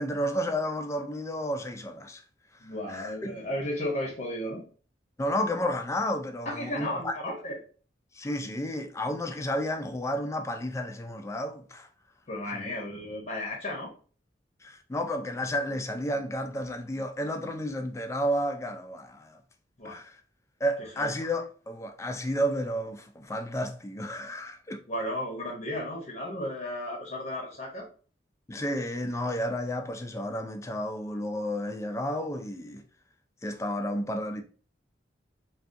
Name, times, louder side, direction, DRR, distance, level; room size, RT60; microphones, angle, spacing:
voice 1, 0.0-2.2 2.9-3.4 5.2-7.1 8.1-11.9 12.5-12.7 14.6-19.4 19.8-20.2 20.6-24.8 28.5-32.8 33.4-34.4, equal, 15° left, 0.3 m, -31 dB
voice 2, 2.6-4.6 6.4-7.6 12.3-13.9 19.8-20.0 20.8-21.1 24.9-27.9, left 1 dB, 45° left, 0.7 m, -34 dB
3.5 x 2.3 x 2.5 m
head